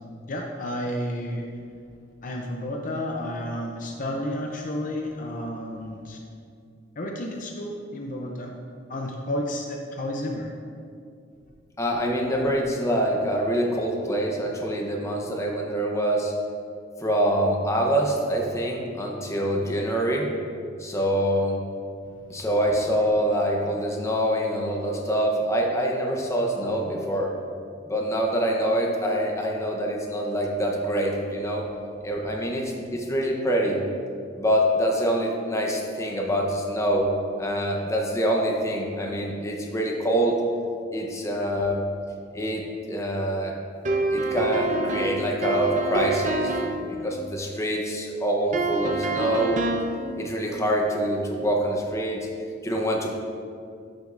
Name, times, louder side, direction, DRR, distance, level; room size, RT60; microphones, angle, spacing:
voice 1, 0.3-1.4 2.2-6.2 7.0-8.5 8.9-10.5, left 1 dB, 45° left, 1 dB, 0.6 m, -31 dB
voice 2, 11.8-16.3 17.0-20.3 20.8-21.6 22.3-27.3 27.9-31.7 32.0-33.8 34.4-37.1 37.4-40.4 40.9-41.8 42.3-43.6 44.1-49.6 50.2-52.3 52.6-53.1, equal, 15° left, 0 dB, 0.9 m, -25 dB
sound 1, 43.9-46.9 48.5-50.0, right 2 dB, 40° right, 0.7 m, -26 dB
11.5 x 6.3 x 2.6 m, 2.4 s
head